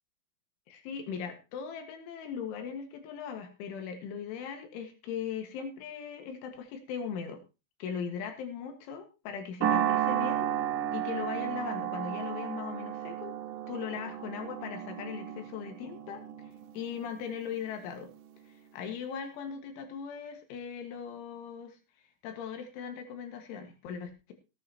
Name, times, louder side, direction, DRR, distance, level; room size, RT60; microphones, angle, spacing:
voice 1, 0.7-7.4 7.8-10.5 10.9-13.4 13.7-18.1 18.5-21.8 22.2-24.3, left 7 dB, 90° left, 5 dB, 4.1 m, -39 dB
sound 1, 9.6-18.1, right 11 dB, 75° right, 3.1 m, -33 dB
18.5 x 9.7 x 3.0 m, 0.30 s
omnidirectional pair, 5.4 m